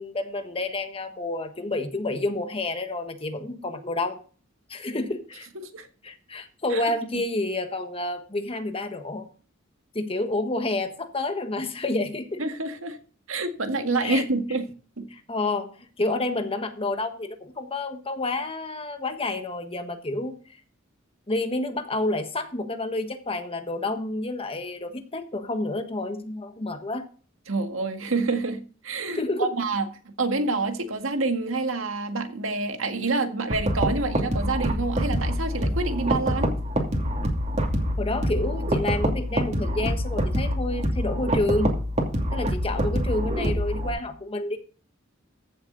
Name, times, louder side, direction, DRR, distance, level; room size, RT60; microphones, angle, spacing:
voice 1, 0.0-4.2 4.7-5.5 6.0-9.3 9.9-12.4 14.0-14.2 15.1-15.7 16.0-20.3 21.3-27.1 29.1-29.5 38.0-41.7 42.3-44.6, left 2 dB, 30° left, 1.4 m, -29 dB
voice 2, 12.4-13.0 13.3-14.7 15.0-15.1 27.5-36.5, right 3 dB, 90° right, 1.9 m, -27 dB
sound 1, 33.5-43.9, equal, 35° right, 2.6 m, -26 dB
15.0 x 7.4 x 4.0 m
head